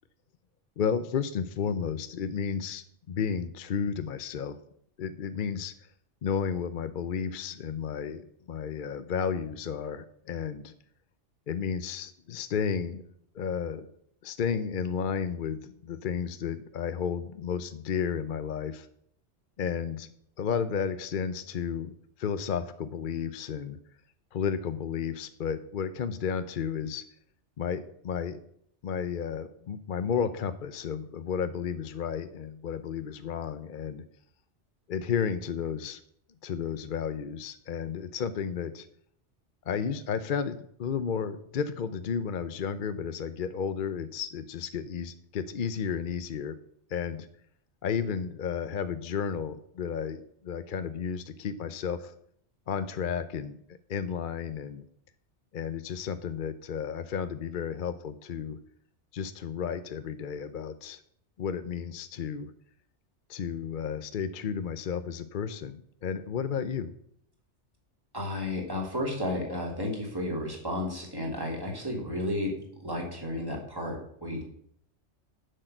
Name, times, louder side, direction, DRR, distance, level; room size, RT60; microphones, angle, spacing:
voice 1, 0.8-4.6 5.0-5.7 6.2-10.7 11.5-13.0 13.3-13.9 14.2-18.9 19.6-20.1 20.4-23.8 24.3-27.0 27.6-28.4 28.8-34.0 34.9-36.0 36.4-38.9 39.7-46.5 46.9-47.3 47.8-52.1 52.7-53.6 53.9-54.8 55.5-58.6 59.1-61.0 61.4-62.5 63.3-66.9, left 7 dB, 55° left, 11 dB, 0.7 m, -32 dB
voice 2, 68.1-74.4, left 1 dB, 20° right, -1 dB, 3.0 m, -32 dB
10.0 x 6.6 x 7.8 m, 0.69 s
omnidirectional pair, 1.2 m